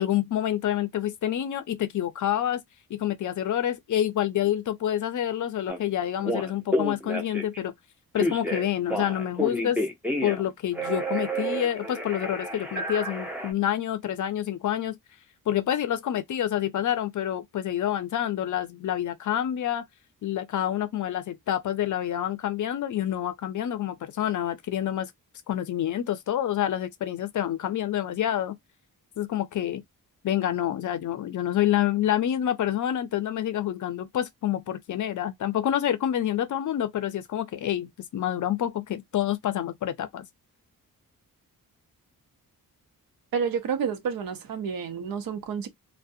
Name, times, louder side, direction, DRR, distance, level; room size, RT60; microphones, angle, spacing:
voice 1, 0.0-2.6 2.9-7.7 8.1-9.8 10.2-15.0 15.5-19.8 20.2-25.1 25.5-28.6 29.2-29.8 30.2-40.3, left 11 dB, 60° left, 0.5 m, -27 dB
Telephone, 5.7-5.8 6.2-7.6 8.2-10.5 10.7-13.5, equal, 5° right, 0.6 m, -30 dB
voice 2, 43.3-45.7, right 6 dB, 80° right, 0.7 m, -29 dB
2.4 x 2.1 x 2.6 m
wide cardioid pair, 150°, 35 cm